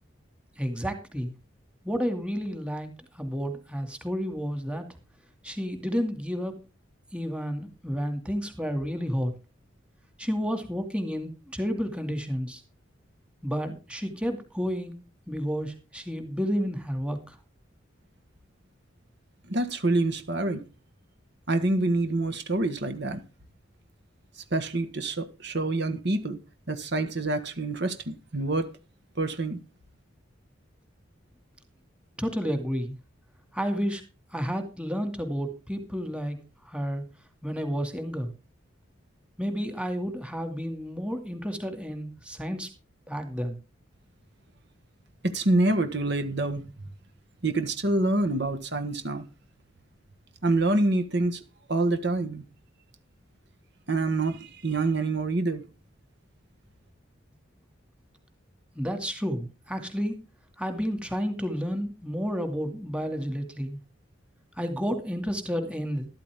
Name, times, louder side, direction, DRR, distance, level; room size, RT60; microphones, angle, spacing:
voice 1, 0.6-1.3 1.8-2.9 3.1-4.9 5.4-6.5 7.1-9.3 10.2-12.6 13.4-14.9 15.3-17.3 32.2-33.0 33.5-34.0 34.3-36.4 36.7-37.0 37.4-38.3 39.4-42.7 43.1-43.6 58.8-60.2 60.6-63.8 64.6-66.1, equal, 5° right, 2.4 m, -31 dB
voice 2, 19.5-20.7 21.5-23.2 24.4-26.4 26.7-28.8 29.2-29.6 45.2-46.6 47.4-49.2 50.4-51.4 51.7-52.4 53.9-55.6, right 2 dB, 55° right, 1.6 m, -26 dB
13.5 x 13.0 x 3.6 m
head